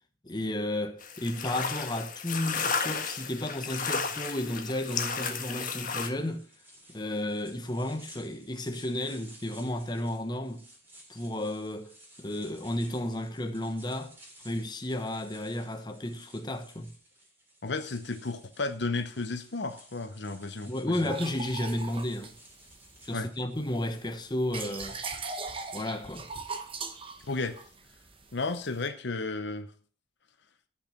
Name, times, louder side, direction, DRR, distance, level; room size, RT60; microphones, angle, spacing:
voice 1, 0.2-6.4 6.9-10.6 11.1-11.9 12.2-14.1 14.4-16.9 20.6-22.3 23.0-25.0 25.7-26.3, left 1 dB, 20° left, 1.1 m, -33 dB
sound 1, 1.0-6.1, left 5 dB, 40° left, 1.5 m, -33 dB
sound 2, 6.1-23.6, right 1 dB, 10° right, 3.4 m, -55 dB
voice 2, 17.6-21.1 23.1-23.3 27.3-27.6 28.3-29.7, left 3 dB, 60° left, 0.8 m, -33 dB
sound 3, 21.1-23.1 23.6-28.9, right 4 dB, 25° right, 1.0 m, -40 dB
14.5 x 6.1 x 5.9 m
head